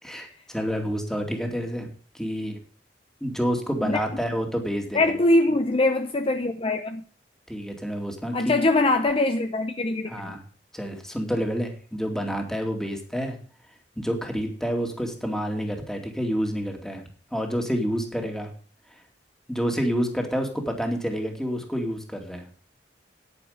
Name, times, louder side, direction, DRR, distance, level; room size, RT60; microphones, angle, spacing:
voice 1, 0.0-1.9 2.1-2.6 3.2-5.2 7.5-8.6 10.1-10.4 10.7-13.4 14.0-17.0 17.3-18.5 19.5-22.4, equal, 5° left, 2.4 m, -28 dB
voice 2, 4.9-7.0 8.3-10.4, left 2 dB, 35° left, 0.8 m, -22 dB
9.8 x 9.7 x 5.1 m
head